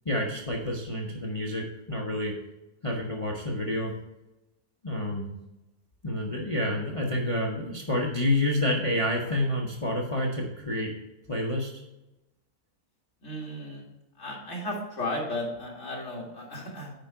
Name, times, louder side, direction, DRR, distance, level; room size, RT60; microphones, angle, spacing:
voice 1, 0.0-2.3 2.8-3.9 4.8-5.3 6.0-10.9 11.3-11.8, left 1 dB, 25° left, -1 dB, 0.8 m, -28 dB
voice 2, 13.2-13.8 14.2-16.9, left 1 dB, 50° left, -2 dB, 2.5 m, -34 dB
9.0 x 4.9 x 4.5 m, 0.96 s
omnidirectional pair, 1.6 m